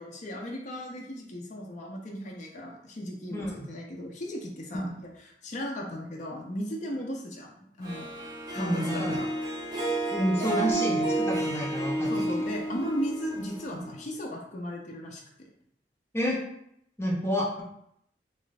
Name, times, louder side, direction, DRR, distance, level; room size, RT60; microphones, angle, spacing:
voice 1, 0.0-8.1 8.5-9.3 12.1-15.5, equal, 45° left, -1 dB, 0.5 m, -36 dB
voice 2, 3.3-3.7 4.7-4.9 8.5-9.2 10.1-12.2 13.7-13.8 16.1-16.4 17.0-17.6, equal, 15° left, -5 dB, 0.9 m, -29 dB
Harp, 7.8-14.1, right 1 dB, 25° right, 0.8 m, -31 dB
3.1 x 2.5 x 4.0 m, 0.74 s
head